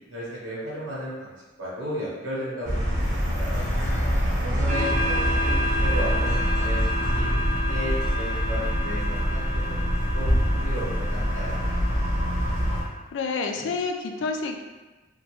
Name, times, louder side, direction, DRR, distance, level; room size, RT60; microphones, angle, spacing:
voice 1, 0.1-1.3 1.6-3.7 4.4-7.3 7.7-9.9 10.1-11.6, equal, 85° right, -8 dB, 0.9 m, -34 dB
sound 1, 2.6-12.8, equal, 60° right, 0.9 m, -25 dB
sound 2, 4.7-12.9, left 1 dB, 35° right, 0.6 m, -32 dB
voice 2, 12.8-14.6, left 4 dB, 65° left, 4 dB, 0.3 m, -29 dB
2.9 x 2.1 x 3.0 m, 1.2 s
head